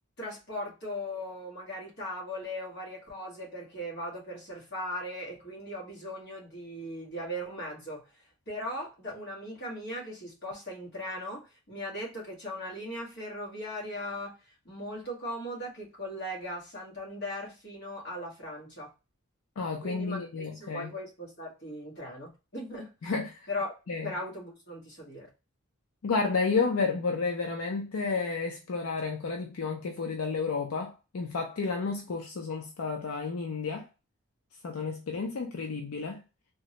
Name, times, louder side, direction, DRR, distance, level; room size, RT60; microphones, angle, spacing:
voice 1, 0.2-8.0 8.5-18.9 19.8-22.9 23.5-23.7 24.0-25.3, left 1 dB, 50° left, 1.2 m, -38 dB
voice 2, 19.6-20.9 23.0-23.4 23.9-24.1 26.0-33.9 34.6-36.2, left 4 dB, 80° left, 0.5 m, -31 dB
3.4 x 2.1 x 2.8 m
head